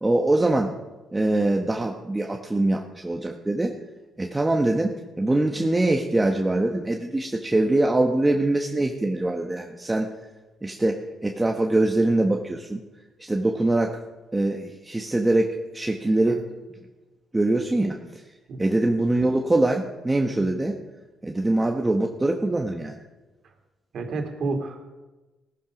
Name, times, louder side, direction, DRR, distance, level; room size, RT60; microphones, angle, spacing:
voice 1, 0.0-0.7 1.1-3.8 4.2-10.1 10.6-12.8 13.2-14.0 14.3-16.5 17.3-18.2 18.6-20.8 21.2-23.0, right 2 dB, 15° right, 2 dB, 1.3 m, -23 dB
voice 2, 23.9-24.8, right 3 dB, 65° right, 3 dB, 3.0 m, -30 dB
17.0 x 13.5 x 5.2 m, 1.2 s
cardioid pair, 90°, 0 cm